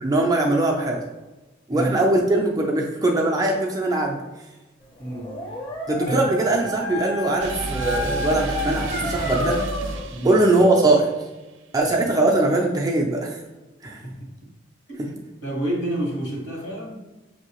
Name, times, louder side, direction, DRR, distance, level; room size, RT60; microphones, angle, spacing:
voice 1, 0.0-1.0 1.7-4.2 5.9-9.6 10.2-11.1 11.7-13.4 13.8-14.0 15.0-15.1, right 2 dB, 20° right, 0 dB, 0.4 m, -21 dB
voice 2, 5.0-5.4 6.1-6.3 10.1-10.4 14.0-14.3 15.4-17.0, right 1 dB, 55° left, -2 dB, 1.4 m, -28 dB
Dog, 5.0-10.1, left 2 dB, 25° left, 0.7 m, -30 dB
sound 1, 7.4-11.2, right 2 dB, 80° right, 0.5 m, -31 dB
6.0 x 2.7 x 2.9 m, 1.1 s
head